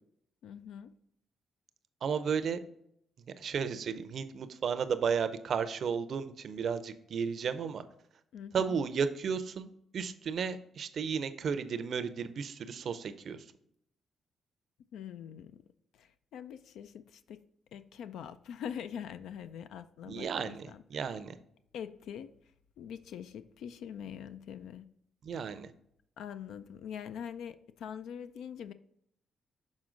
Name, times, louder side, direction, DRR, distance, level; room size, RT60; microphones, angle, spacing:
voice 1, 0.4-1.0 8.3-8.8 14.9-15.6 15.9-17.4 17.7-21.2 21.7-22.3 22.8-24.9 25.3-25.5 26.2-28.7, left 8 dB, 80° left, 12 dB, 0.3 m, -44 dB
voice 2, 2.0-2.6 3.4-7.8 8.5-13.4 20.1-21.4 25.2-25.7, right 6 dB, 60° right, 11 dB, 0.5 m, -33 dB
6.2 x 4.3 x 3.8 m, 0.72 s
cardioid pair, 75°, 0 cm